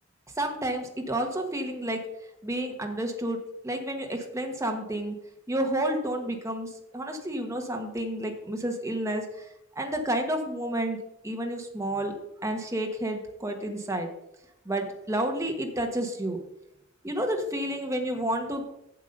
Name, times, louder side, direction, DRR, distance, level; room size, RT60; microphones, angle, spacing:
voice 1, 0.4-2.0 2.4-3.4 3.6-5.1 5.5-6.7 6.9-9.4 9.8-11.0 11.2-12.1 12.4-14.1 14.6-16.4 17.0-18.6, right 1 dB, 15° right, 3 dB, 1.2 m, -30 dB
7.8 x 7.3 x 5.3 m, 0.82 s
head